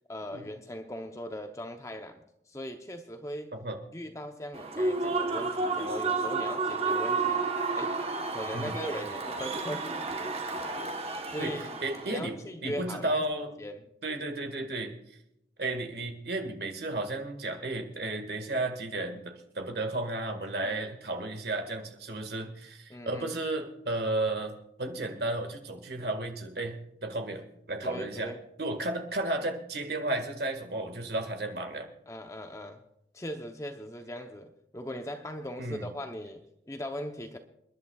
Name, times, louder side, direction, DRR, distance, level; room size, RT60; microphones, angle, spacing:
voice 1, 0.1-3.5 3.9-7.5 7.7-8.0 8.3-9.9 11.3-13.2 13.6-13.9 20.6-20.8 22.9-23.3 27.8-28.4 32.1-32.8 33.1-37.4, equal, 15° left, 5 dB, 0.8 m, -39 dB
Human voice / Cheering / Applause, 4.5-12.2, right 3 dB, 35° right, 1.2 m, -31 dB
voice 2, 11.8-12.4 12.6-13.5 14.0-14.9 15.6-28.3 28.6-31.9 35.6-35.9, right 2 dB, 60° right, 4 dB, 1.9 m, -33 dB
29.0 x 11.0 x 2.4 m, 0.79 s
head